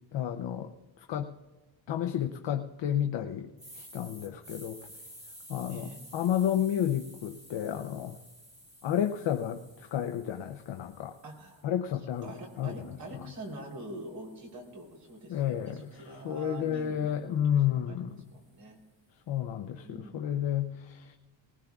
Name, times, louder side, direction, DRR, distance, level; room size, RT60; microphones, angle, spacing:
voice 1, 0.1-1.3 1.9-3.5 3.7-4.8 5.5-8.2 8.8-11.1 11.6-12.7 15.3-15.9 16.2-18.2 19.3-21.2, left 10 dB, 65° left, 5 dB, 0.7 m, -31 dB
sound 1, 3.6-11.6 12.1-16.3, equal, 15° right, 2.2 m, -53 dB
voice 2, 5.7-6.0 11.2-11.6 12.2-17.3 17.6-18.8 19.8-20.5, right 1 dB, 50° right, 0 dB, 3.4 m, -45 dB
19.5 x 19.5 x 2.3 m, 1.2 s
wide cardioid pair, 155°, 47 cm